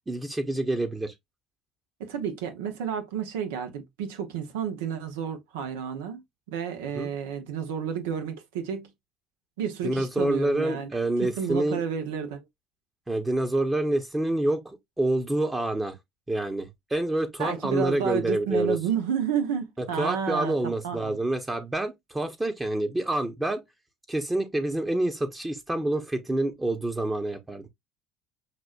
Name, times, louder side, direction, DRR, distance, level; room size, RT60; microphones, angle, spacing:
voice 1, 0.1-1.1 6.9-7.1 9.8-11.8 13.1-16.0 16.3-18.8 19.8-23.6 24.1-27.7, right 1 dB, 15° right, 0.9 m, -27 dB
voice 2, 2.0-6.2 6.5-8.9 9.6-10.9 11.2-12.4 17.4-20.6 20.8-21.2, right 7 dB, 80° right, 0.9 m, -31 dB
5.9 x 2.5 x 2.4 m
hypercardioid pair, 75°, 0 cm